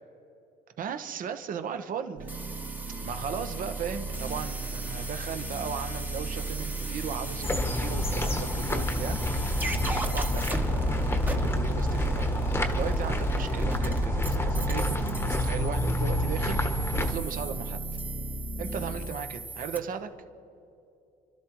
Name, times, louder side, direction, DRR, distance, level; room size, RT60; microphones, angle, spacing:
voice 1, 0.8-2.4 3.0-9.2 10.0-17.8 18.6-20.1, right 7 dB, 55° right, 8 dB, 1.0 m, -37 dB
sound 1, 2.2-19.1, right 2 dB, 70° right, 2.6 m, -37 dB
sound 2, 2.3-19.8, right 2 dB, 10° right, 1.0 m, -37 dB
sound 3, 7.4-17.1, left 1 dB, 15° left, 1.1 m, -28 dB
29.5 x 12.5 x 3.1 m, 2.7 s
cardioid pair, 110°, 17 cm